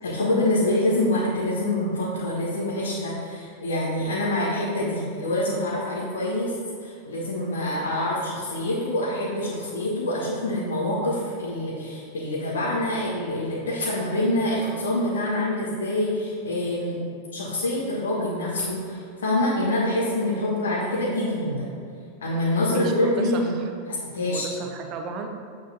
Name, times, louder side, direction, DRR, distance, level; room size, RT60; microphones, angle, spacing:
voice 1, 0.0-6.5 6.8-17.0 17.3-21.7 22.2-23.5 23.9-24.5, left 1 dB, 65° left, -8 dB, 1.6 m, -26 dB
voice 2, 22.7-23.7 24.3-25.3, right 4 dB, 35° right, 4 dB, 0.9 m, -34 dB
8.5 x 4.7 x 4.4 m, 2.3 s
figure-of-eight pair, 90°, 0 cm